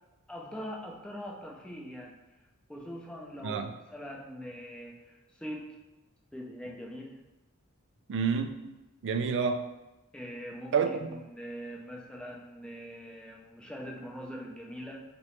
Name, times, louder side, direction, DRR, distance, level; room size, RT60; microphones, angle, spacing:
voice 1, 0.3-2.2 2.7-5.8 6.3-7.2 10.1-10.8 11.1-15.0, equal, 5° left, -2 dB, 0.5 m, -42 dB
voice 2, 8.1-8.8 9.0-9.7 10.7-11.2, right 6 dB, 55° right, 7 dB, 0.3 m, -29 dB
3.0 x 3.0 x 3.0 m, 1.0 s
head